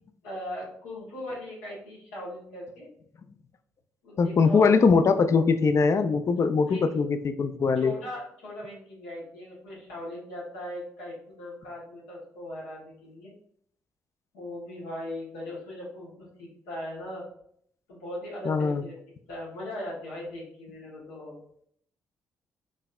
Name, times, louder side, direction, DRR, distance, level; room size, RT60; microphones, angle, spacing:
voice 1, 0.2-2.9 4.0-4.7 6.7-7.0 7.8-13.3 14.3-17.2 17.9-19.0 19.3-21.4, left 1 dB, 90° left, -5 dB, 1.2 m, -39 dB
voice 2, 4.2-7.9 18.4-18.8, left 5 dB, 45° left, 9 dB, 0.4 m, -22 dB
3.9 x 2.7 x 2.3 m, 0.66 s
hypercardioid pair, 50°, 7 cm